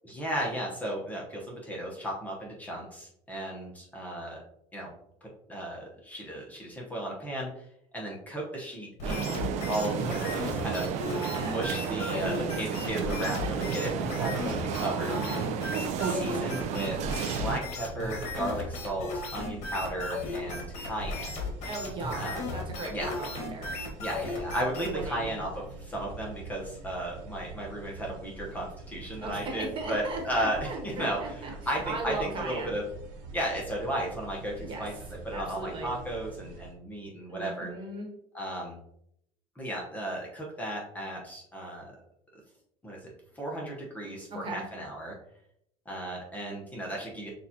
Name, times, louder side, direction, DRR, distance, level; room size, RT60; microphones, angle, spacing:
voice 1, 0.0-4.4 4.7-4.9 5.2-7.6 7.9-9.4 9.7-10.9 11.4-15.1 16.0-17.0 17.4-21.4 22.1-22.4 22.9-23.1 24.0-32.8 33.3-34.9 35.2-37.7 38.3-38.8 39.6-41.9 42.8-45.1 45.9-47.3, right 1 dB, 10° left, -3 dB, 0.9 m, -35 dB
sound 1, 9.0-25.1, left 3 dB, 55° left, 1.3 m, -36 dB
sound 2, 9.0-17.6, right 7 dB, 55° right, 0.5 m, -32 dB
voice 2, 11.1-11.7 12.1-12.6 15.1-15.5 21.6-23.7 24.7-25.3 29.2-31.5 31.8-32.8 34.6-34.9 35.3-35.9 37.3-38.1 44.3-44.6, right 3 dB, 35° right, 0 dB, 1.3 m, -38 dB
sound 3, 16.8-36.7, right 4 dB, 80° right, 1.5 m, -45 dB
6.6 x 2.4 x 2.8 m, 0.74 s
cardioid pair, 135°, 14 cm